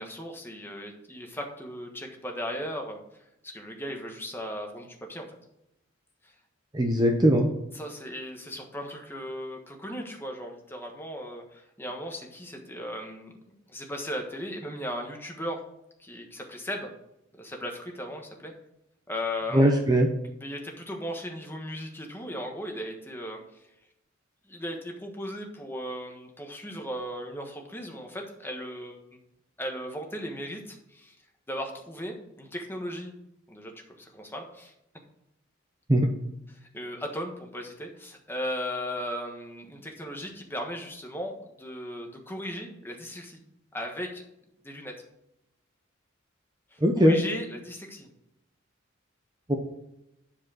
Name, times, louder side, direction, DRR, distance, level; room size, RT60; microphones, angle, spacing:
voice 1, 0.0-3.0 3.4-5.3 7.7-13.3 13.7-15.6 16.0-16.9 17.3-18.5 19.1-19.7 20.4-23.4 24.5-29.0 29.6-31.1 31.5-33.1 33.5-34.7 36.6-43.4 43.7-44.2 44.6-44.9 46.7-48.1, equal, 10° left, 2 dB, 1.3 m, -37 dB
voice 2, 6.7-7.5 19.5-20.1 35.9-36.1 46.8-47.2 49.5-49.6, equal, 20° right, 3 dB, 0.7 m, -20 dB
10.0 x 4.8 x 6.3 m, 0.84 s
head